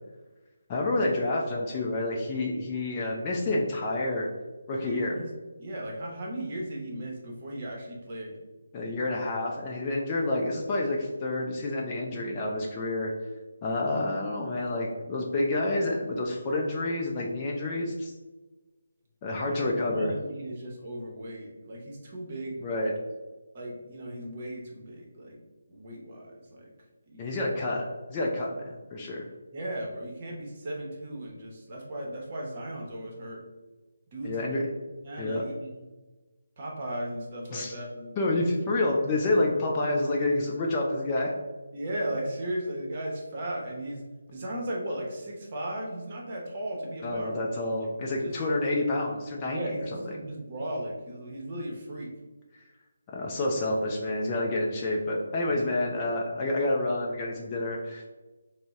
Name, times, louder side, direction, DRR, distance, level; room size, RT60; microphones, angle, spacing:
voice 1, 0.7-4.3 4.7-5.2 8.7-13.1 13.6-18.1 19.2-20.2 22.6-22.9 27.2-29.3 34.2-34.6 35.2-35.4 37.5-37.7 38.2-41.3 47.0-49.6 49.9-50.0 53.1-58.1, left 2 dB, 25° left, -2 dB, 0.4 m, -28 dB
voice 2, 4.7-5.3 5.6-8.4 19.4-22.6 23.5-25.4 25.7-26.7 27.1-27.5 29.5-33.4 34.1-34.6 35.0-35.8 36.6-38.1 41.7-44.0 44.3-47.3 47.8-47.9 48.2-48.3 49.5-52.1, right 1 dB, 35° right, -2 dB, 0.9 m, -36 dB
3.9 x 2.1 x 3.5 m, 1.2 s
figure-of-eight pair, 150°, 0 cm